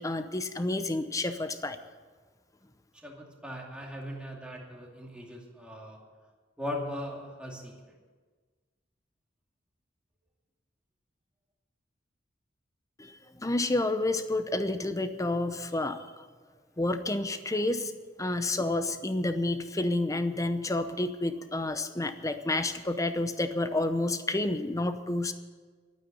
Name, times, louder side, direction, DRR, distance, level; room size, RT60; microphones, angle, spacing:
voice 1, 0.0-1.8 13.0-16.2 16.8-17.9 18.2-25.3, left 2 dB, 15° left, 10 dB, 0.8 m, -30 dB
voice 2, 3.0-6.0 6.6-7.9, left 1 dB, 5° right, -2 dB, 2.5 m, -39 dB
12.0 x 9.4 x 10.0 m, 1.4 s
head